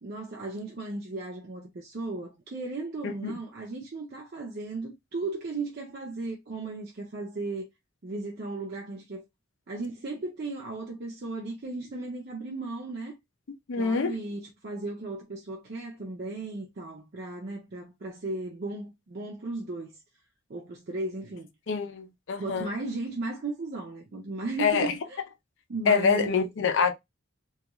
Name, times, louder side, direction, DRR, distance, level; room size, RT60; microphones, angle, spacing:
voice 1, 0.0-7.7 8.0-9.2 9.7-13.1 13.8-20.0 20.5-21.5 22.4-25.2 25.7-26.5, right 2 dB, 50° right, 0.5 m, -36 dB
voice 2, 3.0-3.3 13.7-14.2 21.7-22.7 24.6-24.9 25.9-26.9, left 5 dB, 65° left, 0.4 m, -25 dB
2.3 x 2.3 x 2.9 m
head